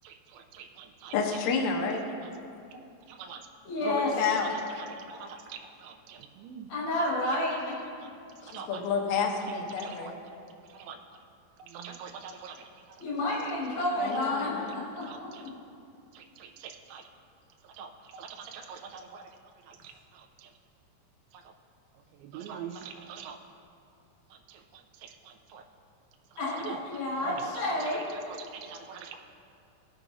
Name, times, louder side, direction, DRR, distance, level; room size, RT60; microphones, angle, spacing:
voice 1, 0.0-1.2 2.2-2.3 2.7-3.4 3.8-6.7 7.2-7.4 7.8-8.8 9.5-10.1 10.6-11.0 11.6-13.4 13.7-14.2 15.0-15.5 16.1-17.1 17.6-20.5 21.3-21.5 22.1-23.4 24.3-25.7 26.3-29.2, right 6 dB, 80° right, 3 dB, 2.4 m, -45 dB
voice 2, 1.1-2.0 3.8-4.5 8.4-10.1 14.0-14.8, left 5 dB, 80° left, 0 dB, 1.6 m, -30 dB
voice 3, 3.7-4.1 6.7-7.7 13.0-15.5 26.4-28.0, left 1 dB, 65° left, -6 dB, 3.5 m, -30 dB
18.0 x 6.0 x 2.7 m, 2.6 s
omnidirectional pair, 4.7 m